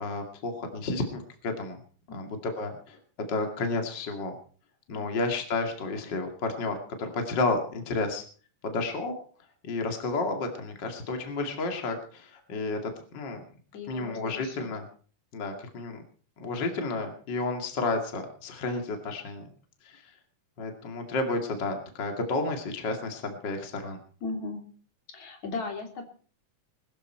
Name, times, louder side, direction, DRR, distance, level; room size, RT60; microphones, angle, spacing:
voice 1, 0.0-1.8 2.1-3.0 3.3-4.3 4.9-8.2 8.6-9.1 9.6-13.4 13.9-14.8 15.3-16.0 16.4-19.4 19.8-20.1 20.6-24.0, left 3 dB, 40° left, 4 dB, 2.7 m, -31 dB
voice 2, 13.7-14.7 24.2-24.6 25.1-26.0, left 3 dB, 65° left, 3 dB, 4.2 m, -37 dB
20.5 x 14.0 x 4.5 m, 0.43 s
omnidirectional pair, 3.5 m